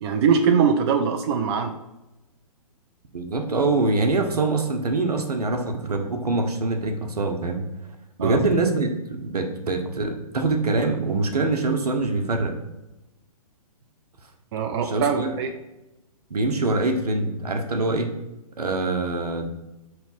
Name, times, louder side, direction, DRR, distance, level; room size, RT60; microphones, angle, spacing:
voice 1, 0.0-1.7 8.2-8.4 14.5-15.5, right 6 dB, 45° right, 6 dB, 0.5 m, -22 dB
voice 2, 3.1-7.6 8.2-12.5 14.8-15.4 16.3-18.1 18.6-19.5, right 3 dB, 80° right, 5 dB, 1.0 m, -24 dB
5.9 x 3.3 x 5.5 m, 0.97 s
figure-of-eight pair, 130°, 20 cm